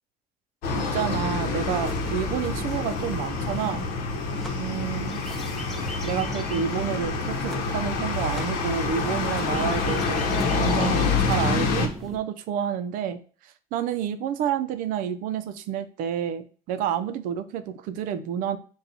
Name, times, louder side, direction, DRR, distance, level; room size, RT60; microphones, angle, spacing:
sound 1, 0.6-11.9, left 4 dB, 80° left, 0.8 m, -27 dB
voice 1, 0.7-3.8 4.6-5.2 6.0-10.2 10.6-13.2 13.7-18.6, right 9 dB, 65° right, 10 dB, 0.5 m, -29 dB
sound 2, 1.5-12.2, left 1 dB, ahead, 0.5 m, -40 dB
4.1 x 2.3 x 3.9 m, 0.40 s
cardioid pair, 175°, 15 cm